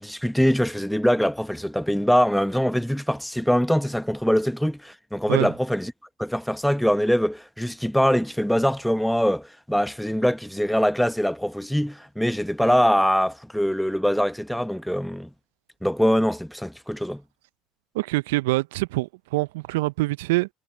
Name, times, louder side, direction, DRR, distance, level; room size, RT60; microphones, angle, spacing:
voice 1, 0.0-5.9 6.2-15.3 15.8-17.2, equal, ahead, 1.2 m, -23 dB
voice 2, 17.9-20.5, right 20 dB, 70° right, 0.8 m, -25 dB
figure-of-eight pair, 70°, 0 cm